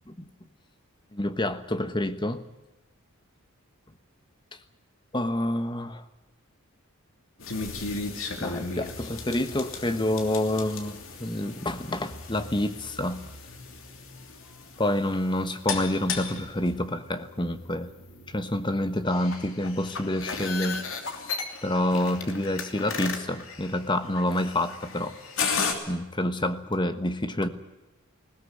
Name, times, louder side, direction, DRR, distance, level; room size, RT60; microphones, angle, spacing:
voice 1, 1.1-2.4 5.1-6.0 8.4-13.2 14.8-17.9 18.3-20.8 21.6-25.1 25.9-27.5, left 1 dB, 20° left, 10 dB, 1.2 m, -28 dB
sound 1, 7.4-25.7, left 4 dB, 65° left, 2.9 m, -36 dB
20.0 x 17.0 x 9.6 m, 1.0 s
head